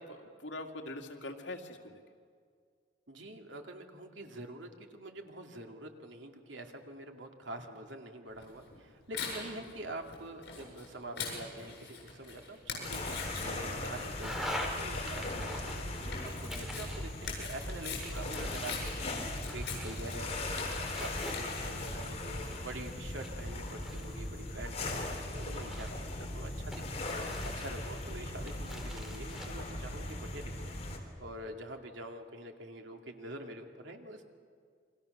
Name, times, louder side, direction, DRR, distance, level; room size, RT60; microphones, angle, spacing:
voice 1, 0.0-2.0, left 2 dB, 80° left, 3 dB, 2.4 m, -43 dB
voice 2, 3.1-14.5 14.8-15.8 16.4-19.2 19.5-20.6 21.0-26.8 27.4-30.7 31.2-34.2, right 1 dB, 85° right, 3 dB, 2.6 m, -45 dB
Tearing, 8.4-21.9, left 5 dB, 60° left, 7.9 m, -44 dB
sound 1, 12.8-31.0, left 1 dB, 35° left, 3.6 m, -39 dB
sound 2, 14.2-14.7 15.1-16.1 16.5-17.6 18.0-20.0 20.3-21.8 22.4-24.3 24.8-26.1 26.7-28.0 28.5-29.5, equal, ahead, 3.3 m, -44 dB
29.0 x 24.0 x 6.7 m, 2.1 s
head